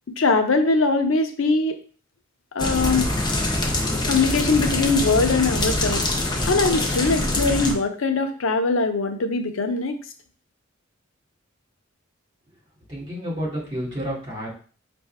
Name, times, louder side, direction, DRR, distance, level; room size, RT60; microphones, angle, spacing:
voice 1, 0.2-1.8 2.5-3.1 4.1-6.0 6.5-10.0, left 3 dB, 85° left, 6 dB, 0.7 m, -21 dB
sound 1, 2.6-7.7, left 1 dB, 20° left, 0.7 m, -24 dB
voice 2, 12.9-14.5, equal, 20° right, -5 dB, 2.4 m, -30 dB
5.4 x 2.6 x 3.4 m, 0.40 s
head